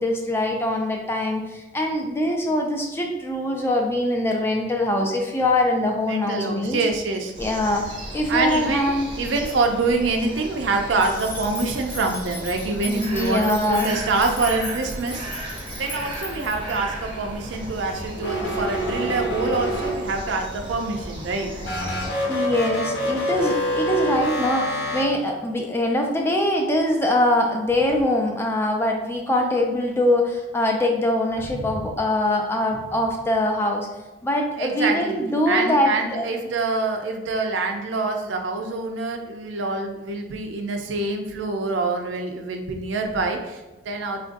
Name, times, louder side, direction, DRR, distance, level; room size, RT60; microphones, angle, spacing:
voice 1, 0.0-6.8 7.4-7.8 8.1-9.1 12.8-14.0 22.3-33.9 34.2-36.2, left 1 dB, 15° left, 1 dB, 0.3 m, -23 dB
voice 2, 6.1-7.3 8.3-15.5 15.7-21.5 31.5-31.7 34.6-44.2, right 3 dB, 80° right, 4 dB, 0.5 m, -26 dB
sound 1, 7.3-22.1, right 1 dB, 25° right, 0.6 m, -36 dB
sound 2, 11.0-16.7, left 2 dB, 80° left, 1.0 m, -37 dB
sound 3, 18.2-20.3 21.6-25.0, equal, 60° left, 0.7 m, -26 dB
3.8 x 2.5 x 2.5 m, 1.1 s
head